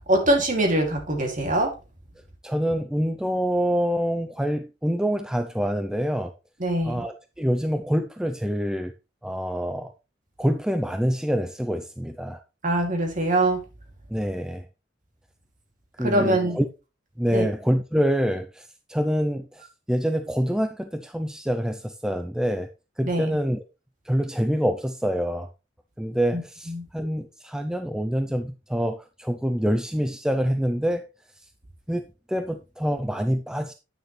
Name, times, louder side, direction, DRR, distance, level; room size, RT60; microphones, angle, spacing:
voice 1, 0.1-1.7 6.6-7.0 12.6-13.6 16.0-16.6 17.3-17.5 23.0-23.3 26.3-26.4 26.7-26.9, right 1 dB, 45° right, 3 dB, 2.5 m, -23 dB
voice 2, 2.4-6.3 6.8-8.9 9.2-9.9 10.4-12.4 14.1-14.7 16.0-16.7 17.2-22.7 23.0-23.6 24.1-25.5 26.0-31.1 31.9-33.7, equal, 5° right, 8 dB, 0.5 m, -26 dB
9.3 x 6.7 x 3.2 m, 0.29 s
head